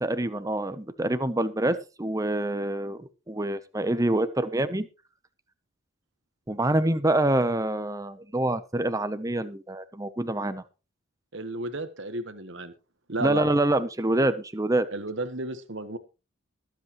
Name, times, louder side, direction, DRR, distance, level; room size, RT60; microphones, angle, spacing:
voice 1, 0.0-4.9 6.5-10.6 13.2-14.9, right 1 dB, 15° right, 12 dB, 0.7 m, -26 dB
voice 2, 11.3-12.7 13.1-13.4 14.9-16.0, right 2 dB, 55° right, 10 dB, 1.3 m, -33 dB
21.0 x 8.2 x 3.0 m, 0.30 s
head